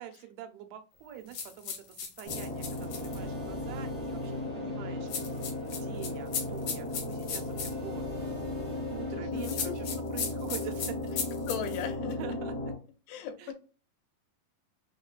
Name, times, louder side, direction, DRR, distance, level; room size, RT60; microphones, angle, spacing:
voice 1, 0.0-5.1 5.6-8.0 8.4-8.5 8.9-11.2 12.0-12.7 13.4-13.5, right 11 dB, 90° right, 7 dB, 2.6 m, -45 dB
sound 1, 1.3-3.2 5.1-7.7 9.4-11.8, left 6 dB, 65° left, 1.7 m, -36 dB
sound 2, 2.2-12.7, left 2 dB, 30° left, 0.7 m, -36 dB
sound 3, 2.4-9.2, right 3 dB, 70° right, 1.0 m, -51 dB
voice 2, 9.1-10.0 10.3-10.6 11.5-12.4 13.1-13.5, left 7 dB, 85° left, 6 dB, 2.7 m, -38 dB
6.0 x 2.2 x 2.4 m, 0.36 s
omnidirectional pair, 4.4 m